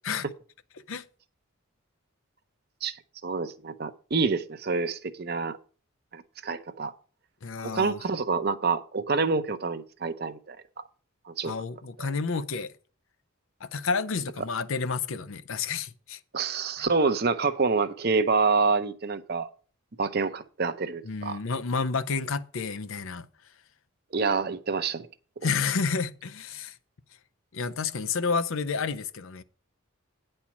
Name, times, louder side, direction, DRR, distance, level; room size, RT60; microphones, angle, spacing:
voice 1, 3.2-5.6 6.1-6.9 7.6-10.6 11.4-11.5 16.3-19.5 20.0-21.4 24.1-25.1, right 4 dB, 45° right, 0.7 m, -27 dB
voice 2, 7.4-8.0 11.4-12.7 13.6-16.2 16.8-16.9 21.0-23.3 25.4-26.8 27.5-29.4, left 5 dB, 75° left, 0.6 m, -30 dB
9.7 x 4.4 x 7.1 m
head